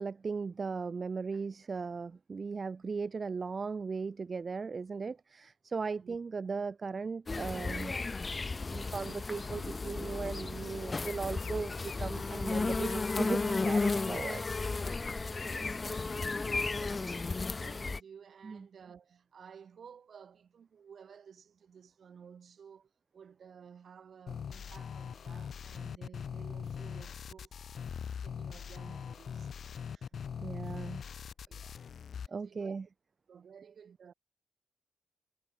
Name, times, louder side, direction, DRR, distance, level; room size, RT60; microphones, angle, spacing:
voice 1, 0.0-7.9 8.7-14.4 16.4-16.5 18.4-18.7 30.4-31.0 32.3-32.8, right 4 dB, 35° right, 0.6 m, -37 dB
sound 1, 7.3-18.0, left 3 dB, 25° left, 0.5 m, -34 dB
Chirp tweet, 11.0-11.5 11.9-12.1 12.4-12.8 13.1-13.8 14.1-15.5 15.7-16.3 16.7-17.0 17.4-17.8, left 8 dB, 75° left, 2.6 m, -51 dB
voice 2, 15.5-27.5 28.2-29.6 29.8-30.7 31.5-31.9 32.4-32.8 33.3-34.1, right 7 dB, 55° right, 7.1 m, -55 dB
sound 2, 24.3-32.3, left 7 dB, 55° left, 0.9 m, -41 dB
wide cardioid pair, 170°, 0 cm